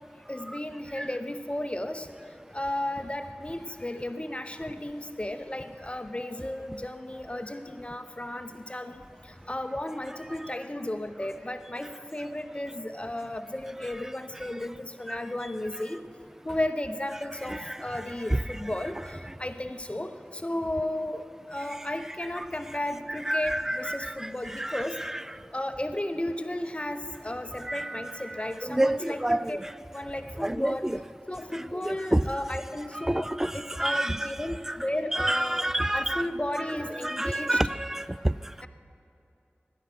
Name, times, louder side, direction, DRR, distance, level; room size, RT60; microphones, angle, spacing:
voice 1, 0.3-2.1 2.5-16.1 16.4-21.2 21.5-25.0 25.5-29.6 29.9-30.9 31.3-33.3 33.5-35.7 35.9-37.6, left 1 dB, 30° left, 8 dB, 0.8 m, -34 dB
voice 2, 17.4-18.7 19.2-19.3 21.8-21.9 22.3-22.5 23.1-25.2 27.5-29.7 30.4-31.0 31.5-32.3 32.9-34.8 35.1-36.3 36.6-38.5, right 1 dB, 10° right, 17 dB, 0.3 m, -30 dB
16.0 x 11.5 x 5.9 m, 2.7 s
wide cardioid pair, 50°, 4 cm